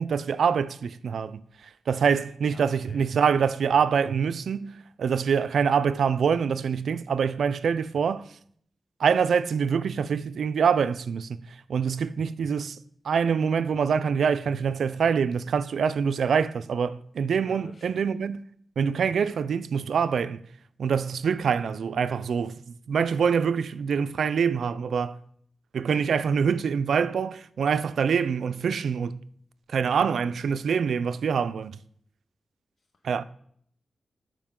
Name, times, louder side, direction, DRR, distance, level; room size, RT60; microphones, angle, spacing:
voice 1, 0.0-1.4 1.9-8.2 9.0-11.3 11.7-12.8 13.0-18.4 18.8-20.4 20.8-22.6 22.9-25.2 25.7-29.2 29.7-31.8 33.0-33.2, right 6 dB, 85° right, 0.4 m, -25 dB
voice 2, 2.5-3.1 3.3-3.8 17.4-18.0, left 3 dB, 60° left, 0.7 m, -48 dB
12.5 x 5.0 x 3.7 m
cardioid pair, 70°, 0 cm